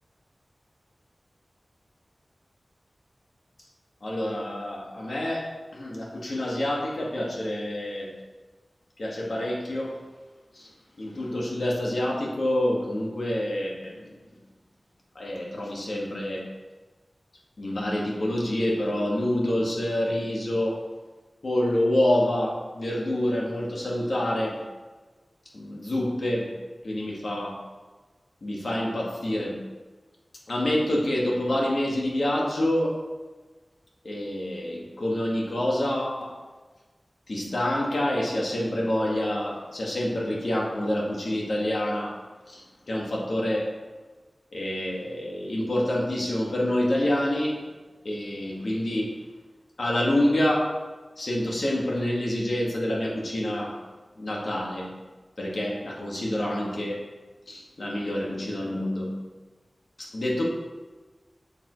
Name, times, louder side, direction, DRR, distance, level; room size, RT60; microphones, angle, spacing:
voice 1, 4.0-8.1 9.0-10.0 10.5-10.7 11.0-14.3 15.2-16.5 17.6-20.8 21.4-24.6 25.5-26.5 26.8-27.6 28.4-29.6 30.5-33.0 34.0-36.4 37.3-42.2 42.5-43.7 44.5-47.6 48.0-49.2 49.8-50.7 51.2-53.8 54.2-54.9 55.4-57.0 57.5-59.2 60.0-60.4, left 1 dB, 70° left, -2 dB, 1.8 m, -27 dB
7.3 x 7.0 x 3.2 m, 1.3 s
wide cardioid pair, 45°, 0 cm